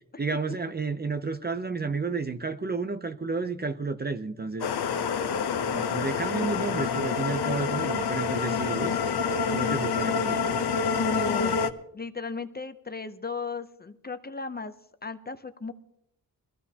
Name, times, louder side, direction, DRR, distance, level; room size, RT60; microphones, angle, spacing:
voice 1, 0.2-4.7 5.6-10.6, right 4 dB, 25° right, 0.5 m, -31 dB
sound 1, 4.6-11.7, left 6 dB, 85° left, 0.9 m, -27 dB
voice 2, 10.9-11.6 11.9-14.7 15.0-15.7, left 4 dB, 25° left, 0.6 m, -35 dB
23.0 x 14.5 x 2.8 m
wide cardioid pair, 160°, 38 cm